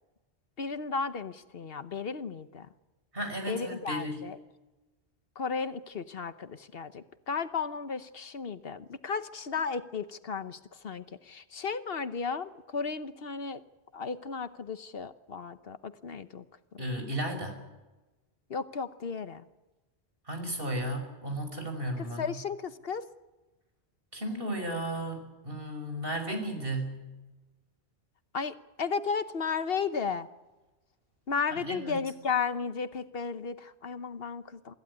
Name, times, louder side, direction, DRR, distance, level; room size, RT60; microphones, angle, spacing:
voice 1, 0.6-2.7 3.5-4.4 5.4-13.6 13.9-16.4 18.5-19.4 22.0-23.0 28.3-30.3 31.3-34.7, left 5 dB, 65° left, 12 dB, 1.2 m, -34 dB
voice 2, 3.1-4.2 16.8-17.6 20.3-22.4 24.1-27.0 31.5-32.1, right 1 dB, 60° right, 5 dB, 5.7 m, -34 dB
25.5 x 15.0 x 9.6 m, 1.1 s
omnidirectional pair, 1.1 m